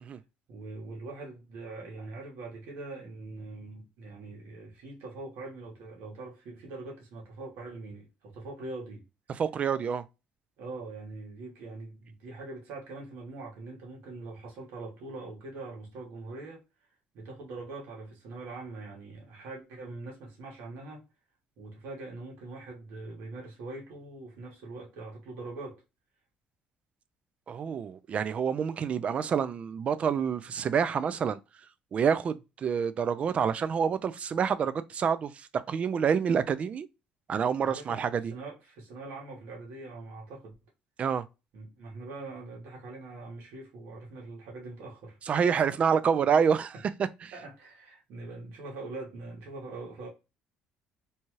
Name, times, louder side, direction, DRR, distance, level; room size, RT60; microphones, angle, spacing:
voice 1, 0.5-9.0 10.6-16.6 17.1-21.1 21.6-25.8 37.6-38.0 38.3-40.5 41.5-45.2 47.3-50.1, right 3 dB, 75° right, 1.3 m, -43 dB
voice 2, 9.4-10.0 27.5-31.4 31.9-36.9 37.3-38.3 41.0-41.2 45.3-46.7 47.2-47.3, right 7 dB, 40° right, 0.3 m, -27 dB
2.8 x 2.3 x 3.0 m
cardioid pair, 110°, 3 cm